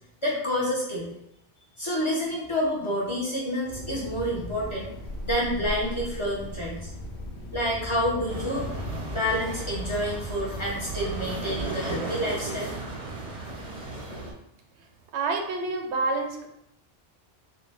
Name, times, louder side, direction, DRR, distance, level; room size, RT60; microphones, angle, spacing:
voice 1, 0.2-1.1 1.8-4.9 5.2-6.9 7.5-8.7 9.1-12.7, equal, 30° left, -5 dB, 0.7 m, -28 dB
sound 1, 3.7-11.7, equal, 85° left, 0.9 m, -37 dB
sound 2, 8.3-14.3, right 3 dB, 40° right, 0.6 m, -36 dB
voice 2, 15.1-16.5, right 3 dB, 90° right, 4 dB, 0.9 m, -28 dB
3.6 x 2.1 x 3.3 m, 0.78 s
omnidirectional pair, 1.1 m